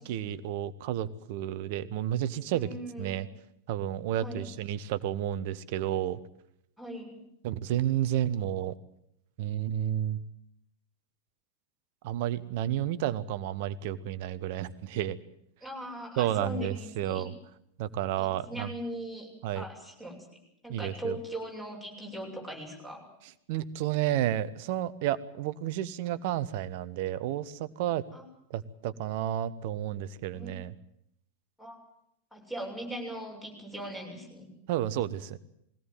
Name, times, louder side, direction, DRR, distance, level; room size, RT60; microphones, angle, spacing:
voice 1, 0.0-2.7 3.0-3.3 3.7-6.2 7.4-8.7 9.4-10.2 12.0-15.2 16.2-17.3 17.8-18.7 19.4-19.6 20.7-21.2 23.5-28.0 28.5-30.7 34.7-35.4, right 12 dB, 50° right, 15 dB, 1.0 m, -31 dB
voice 2, 2.5-3.2 4.2-4.5 6.8-7.2 15.6-17.3 18.2-19.3 19.5-20.2 20.6-23.1 28.1-28.2 30.3-30.5 31.6-31.8 32.3-34.5, right 1 dB, 5° left, 0 dB, 7.0 m, -39 dB
21.5 x 17.5 x 9.2 m, 0.75 s
figure-of-eight pair, 90°, 0 cm